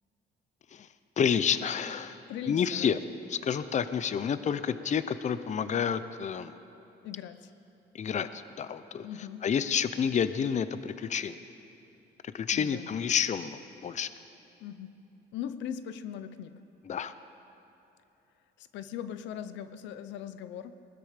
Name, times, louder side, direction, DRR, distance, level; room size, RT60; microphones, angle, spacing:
voice 1, 1.2-2.2 2.5-3.0 3.3-6.5 7.9-9.1 9.4-11.4 12.2-14.1 16.9-17.1, left 7 dB, 40° left, 13 dB, 0.6 m, -29 dB
voice 2, 2.3-3.0 7.0-7.5 9.0-9.5 12.5-12.9 14.6-14.9 15.3-16.6 18.6-20.7, left 9 dB, 90° left, 12 dB, 0.7 m, -39 dB
20.0 x 13.0 x 5.1 m, 3.0 s
cardioid pair, 90°, 18 cm